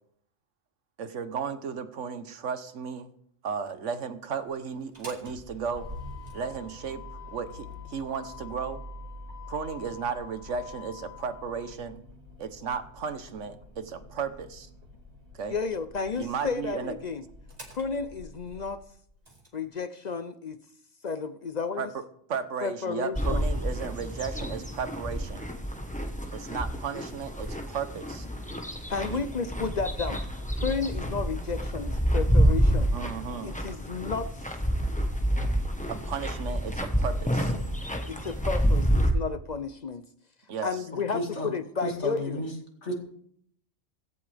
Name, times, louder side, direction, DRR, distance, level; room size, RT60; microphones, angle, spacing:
voice 1, 1.0-3.1 3.4-5.9 6.3-7.0 7.3-8.8 9.5-12.0 12.4-14.7 15.3-15.5 16.1-17.0 21.8-21.9 22.3-25.4 26.3-28.3 29.1-29.2 32.9-33.6 35.9-37.5 40.5-40.7, right 6 dB, 70° right, 11 dB, 1.4 m, -34 dB
Motor vehicle (road), 4.8-19.5, left 2 dB, 30° right, 2.4 m, -45 dB
voice 2, 15.5-17.2 17.7-18.8 19.5-20.6 21.0-21.9 22.6-23.4 28.9-30.2 30.6-32.9 33.4-34.5 38.1-40.0 40.6-42.4, left 5 dB, 50° left, 12 dB, 0.6 m, -32 dB
sound 1, 23.2-39.1, equal, 5° left, 1.2 m, -28 dB
voice 3, 41.1-41.5 41.8-42.5 42.8-42.9, left 1 dB, 65° left, 1 dB, 2.5 m, -32 dB
16.0 x 15.0 x 3.5 m, 0.67 s
omnidirectional pair, 1.3 m